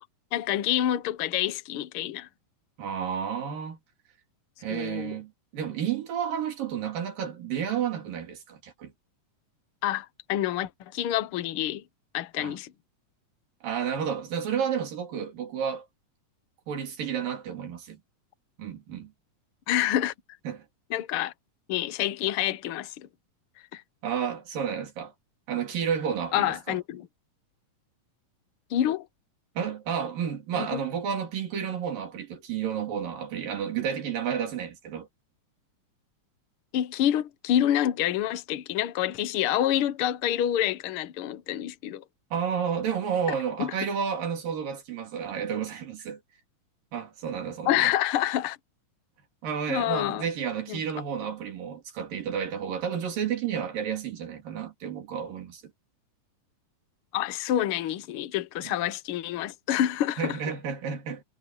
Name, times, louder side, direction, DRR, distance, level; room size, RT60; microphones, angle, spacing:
voice 1, 0.3-2.3 4.7-5.2 9.8-11.8 12.1-12.7 19.7-20.1 20.9-21.3 21.7-23.1 23.7-23.8 26.3-27.1 28.7-29.1 30.6-30.8 36.7-42.0 43.6-43.7 47.6-48.6 49.7-50.2 50.7-50.8 57.1-60.4, left 11 dB, 75° left, 1.2 m, -27 dB
voice 2, 2.8-3.8 4.6-8.9 12.4-12.5 13.6-15.9 16.7-18.0 18.6-19.1 20.4-20.6 24.0-25.1 25.5-26.8 29.6-35.1 42.3-46.2 46.9-47.9 49.4-55.6 58.6-58.7 60.2-61.2, right 8 dB, 80° right, 4.7 m, -31 dB
omnidirectional pair, 3.9 m